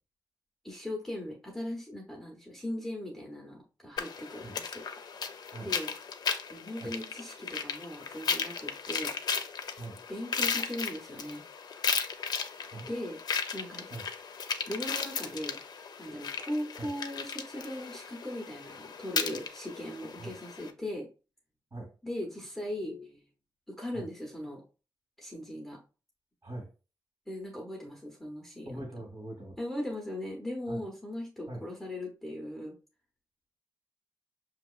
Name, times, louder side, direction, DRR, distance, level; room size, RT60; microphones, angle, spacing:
voice 1, 0.6-4.8 5.6-5.9 6.5-9.1 10.1-11.4 12.9-13.2 13.5-13.9 14.7-15.6 16.0-21.1 22.0-23.2 23.7-24.6 25.2-25.8 27.3-29.1 29.6-32.7, left 1 dB, ahead, -2 dB, 0.9 m, -39 dB
sound 1, 4.0-20.7, left 6 dB, 65° left, 0.5 m, -36 dB
voice 2, 28.6-29.6 30.7-30.8 31.5-31.6, right 2 dB, 40° right, -3 dB, 1.7 m, -41 dB
5.9 x 2.8 x 2.4 m, 0.33 s
wide cardioid pair, 150°, 8 cm